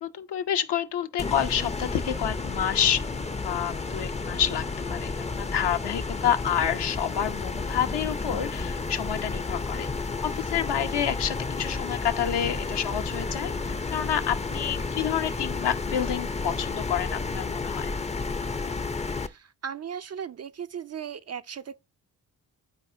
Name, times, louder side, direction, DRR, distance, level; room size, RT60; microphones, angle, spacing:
voice 1, 0.0-3.0 3.4-9.9 10.2-17.9, left 9 dB, 60° left, 0.8 m, -29 dB
sound 1, 1.2-19.3, left 3 dB, 15° left, 0.5 m, -31 dB
voice 2, 19.2-21.8, right 8 dB, 35° right, 0.5 m, -37 dB
12.0 x 4.2 x 2.7 m
hypercardioid pair, 40°, 46 cm